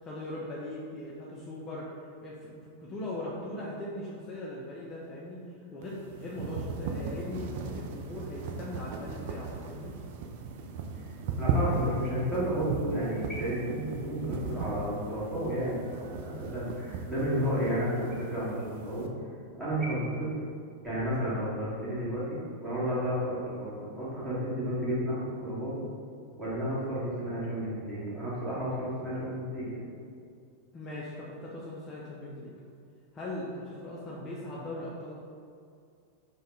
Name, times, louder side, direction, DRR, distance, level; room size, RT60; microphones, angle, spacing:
voice 1, 0.0-5.5 5.7-10.0 30.7-32.5 33.1-35.2, left 1 dB, 25° left, -5 dB, 0.6 m, -40 dB
sound 1, 5.8-19.1, right 4 dB, 50° right, 0.3 m, -37 dB
voice 2, 11.4-19.1 19.6-20.3 20.8-25.8 26.4-29.8, equal, 15° right, -9 dB, 1.5 m, -32 dB
5.3 x 2.3 x 3.2 m, 2.3 s
figure-of-eight pair, 90°, 0 cm